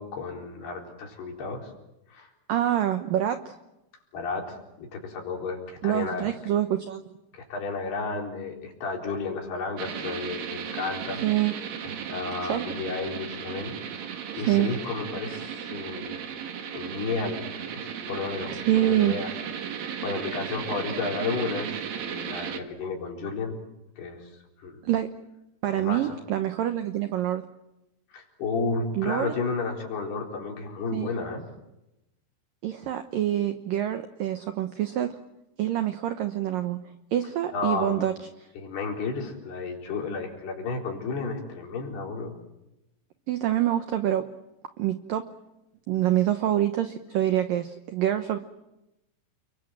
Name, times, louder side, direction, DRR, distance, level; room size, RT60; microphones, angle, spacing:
voice 1, 0.0-1.7 2.1-2.3 4.1-6.3 7.3-11.2 11.8-13.7 14.3-16.2 16.7-17.5 17.7-19.3 19.7-23.6 24.0-24.3 24.6-24.8 25.7-26.2 28.1-31.4 37.5-38.1 38.6-42.4, left 4 dB, 60° left, 1 dB, 6.0 m, -32 dB
voice 2, 2.5-3.6 5.8-7.0 11.2-11.6 12.5-12.7 14.3-14.7 18.7-19.1 24.8-25.1 25.6-27.4 28.9-29.3 30.9-31.1 32.6-35.2 35.6-36.8 37.1-38.1 43.3-44.3 44.8-45.2 45.9-48.4, right 12 dB, 80° right, 8 dB, 2.0 m, -26 dB
sound 1, 9.8-22.6, right 8 dB, 55° right, 3.1 m, -35 dB
30.0 x 23.0 x 7.7 m, 0.92 s
omnidirectional pair, 5.5 m